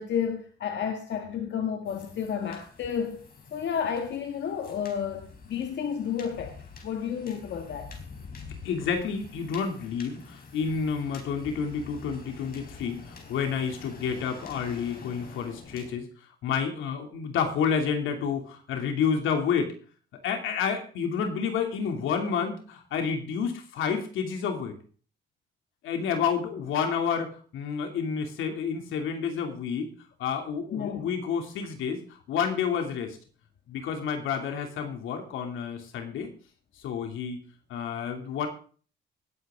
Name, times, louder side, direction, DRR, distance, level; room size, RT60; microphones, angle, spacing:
voice 1, 0.0-6.6 6.8-7.9 30.7-31.0, left 7 dB, 65° left, 1.8 m, -31 dB
sound 1, 1.8-15.9, left 4 dB, 50° left, 4.3 m, -47 dB
voice 2, 8.6-16.1 16.4-19.7 20.2-24.7 25.8-29.9 30.2-33.2 33.7-36.3 36.8-38.5, left 6 dB, 85° left, 2.8 m, -29 dB
19.5 x 8.8 x 3.7 m
cardioid pair, 90°, 20 cm